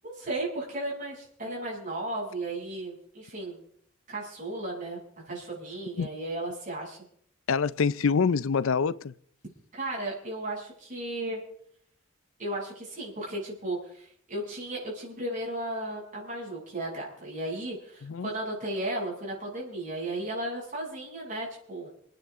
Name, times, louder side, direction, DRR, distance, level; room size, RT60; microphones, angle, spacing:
voice 1, 0.0-3.6 4.1-5.0 5.3-7.0 9.7-11.4 12.4-21.9, right 1 dB, 40° right, 7.5 m, -35 dB
voice 2, 7.5-9.1 18.0-18.3, left 5 dB, 70° left, 0.5 m, -25 dB
28.0 x 10.0 x 3.7 m
head